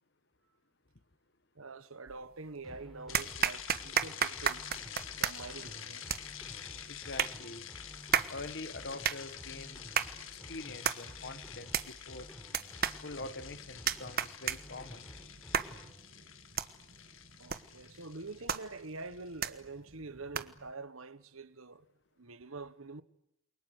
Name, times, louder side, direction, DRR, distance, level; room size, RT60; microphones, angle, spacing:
voice 1, 1.5-4.7 5.1-6.2 17.4-21.9 22.2-23.0, right 3 dB, 80° right, 1.4 m, -46 dB
sound 1, 2.1-2.6 3.1-20.7, right 8 dB, 45° right, 1.2 m, -36 dB
sound 2, 2.6-15.9, equal, ahead, 5.7 m, -52 dB
sound 3, 3.1-19.4, left 10 dB, 70° left, 1.7 m, -48 dB
voice 2, 6.9-7.7 8.3-9.8 10.3-12.3 13.0-15.0, left 2 dB, 55° left, 1.3 m, -44 dB
28.5 x 23.5 x 8.2 m
head